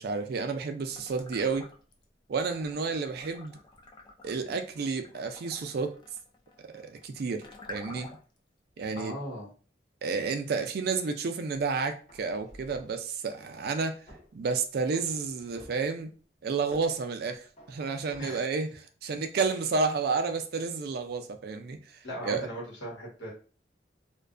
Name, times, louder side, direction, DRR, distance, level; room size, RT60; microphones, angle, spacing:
voice 1, 0.0-1.7 2.3-3.6 4.2-5.9 6.7-8.2 8.8-9.2 10.0-14.0 14.3-16.1 16.4-22.5, right 4 dB, 60° right, 0.4 m, -31 dB
sound 1, 0.9-2.0 2.4-8.4, left 2 dB, 25° left, 0.4 m, -49 dB
voice 2, 8.9-9.5 18.2-18.5 19.4-19.6 22.0-23.3, equal, 85° left, 1.2 m, -38 dB
sound 2, 12.1-13.1 14.1-14.3 14.9-15.9 16.7-17.0 17.6-18.2, equal, 45° left, 0.8 m, -53 dB
2.4 x 2.2 x 2.4 m
head